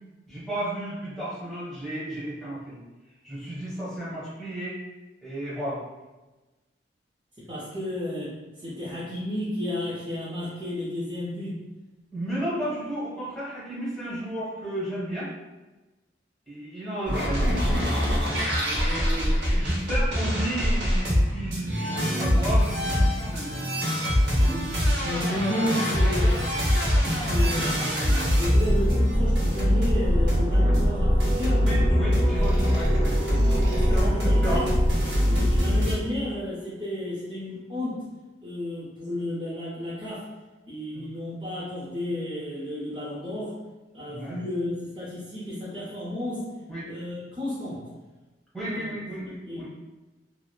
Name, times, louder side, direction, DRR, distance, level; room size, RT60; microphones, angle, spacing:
voice 1, 0.3-2.8 3.2-4.8 5.2-5.8 12.1-15.3 16.5-17.8 18.6-23.5 30.6-30.8 31.6-34.1 34.4-34.6 40.9-41.1 44.1-44.4 46.7-46.8 48.5-49.7, right 1 dB, ahead, -10 dB, 1.0 m, -33 dB
voice 2, 7.4-11.6 24.4-26.7 27.2-31.7 33.7-34.7 35.3-38.1 38.4-40.3 40.7-43.6 43.9-46.5 46.9-47.8 48.6-48.9 49.3-49.7, left 1 dB, 25° right, -9 dB, 0.5 m, -32 dB
sound 1, 17.1-35.9, equal, 85° right, 0.8 m, -23 dB
sound 2, 26.5-36.8, right 2 dB, 50° left, 1.3 m, -37 dB
2.9 x 2.0 x 2.2 m, 1.1 s
head